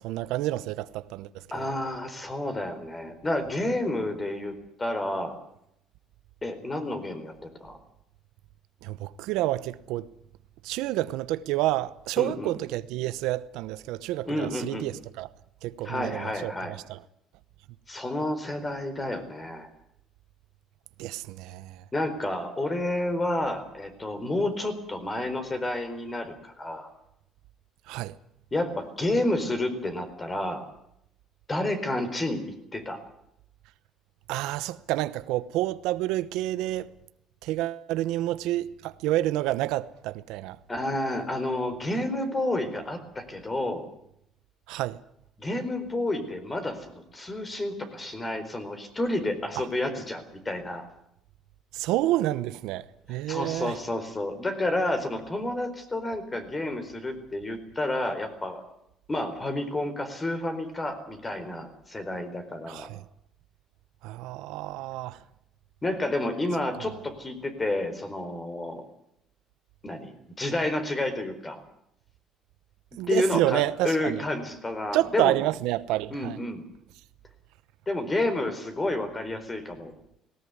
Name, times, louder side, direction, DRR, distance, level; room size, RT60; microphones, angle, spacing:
voice 1, 0.0-1.7 8.8-10.1 10.6-15.3 15.6-16.5 16.9-17.0 21.0-21.8 27.9-28.1 34.3-36.9 37.4-40.6 44.7-45.0 49.6-49.7 51.7-53.7 62.7-63.0 64.0-65.2 66.8-66.9 73.0-74.2 74.9-76.4, right 15 dB, 85° right, 0.9 m, -29 dB
voice 2, 1.5-5.4 6.4-7.8 12.2-12.5 14.3-14.9 15.8-16.8 17.9-19.7 21.9-26.9 28.5-30.6 31.5-33.0 40.7-43.9 45.4-50.8 53.3-58.6 59.1-62.9 65.8-68.9 69.8-71.6 72.9-75.3 76.1-76.6 77.9-79.9, left 1 dB, 20° left, 4.3 m, -30 dB
19.0 x 18.5 x 9.7 m
cardioid pair, 115°, 0 cm